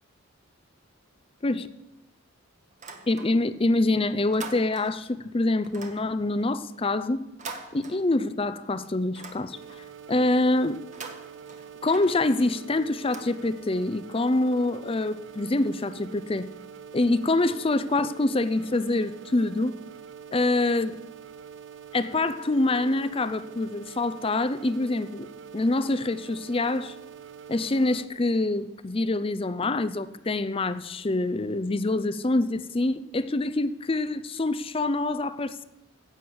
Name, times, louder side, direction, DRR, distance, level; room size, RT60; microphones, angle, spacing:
sound 1, 2.7-3.7 4.0-5.1 5.6-8.5 8.8-10.0 10.8-13.9, right 4 dB, 35° right, 1.3 m, -44 dB
voice 1, 3.1-7.3 7.7-10.8 11.8-16.5 16.9-19.7 20.3-20.9 21.9-25.3 25.5-27.0 27.5-35.6, left 2 dB, 25° left, 14 dB, 0.5 m, -25 dB
sound 2, 9.5-28.1, right 7 dB, 60° right, 0.6 m, -45 dB
15.5 x 6.4 x 8.6 m, 1.0 s
head